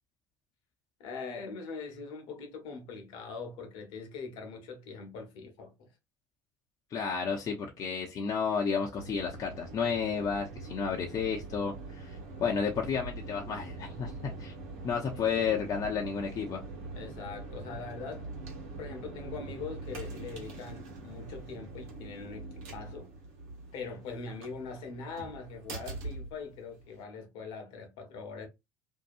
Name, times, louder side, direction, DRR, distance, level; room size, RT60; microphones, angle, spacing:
voice 1, 1.0-5.9 16.9-18.3 18.8-23.1 23.7-28.5, left 4 dB, 65° left, 1.0 m, -42 dB
voice 2, 6.9-14.5 14.8-16.6, left 6 dB, 45° left, 0.7 m, -32 dB
sound 1, 9.0-27.0, right 3 dB, 75° right, 1.1 m, -43 dB
2.8 x 2.2 x 2.5 m
hypercardioid pair, 75°, 9 cm